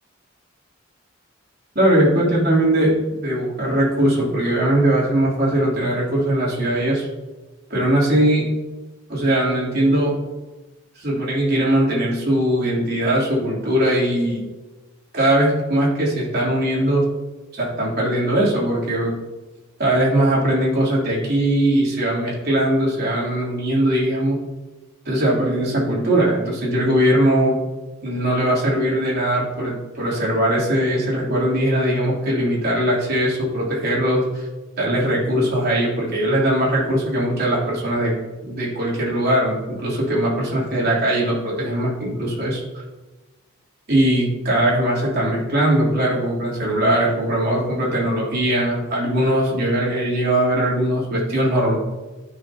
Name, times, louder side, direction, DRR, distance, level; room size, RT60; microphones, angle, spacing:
voice 1, 1.7-7.1 7.7-8.5 9.1-10.1 10.9-14.4 15.1-17.1 17.5-19.2 19.8-24.4 25.0-27.6 28.0-34.5 34.8-38.2 38.4-42.6 43.9-51.8, right 1 dB, 45° right, -6 dB, 3.4 m, -20 dB
14.5 x 6.4 x 2.9 m, 1.2 s
head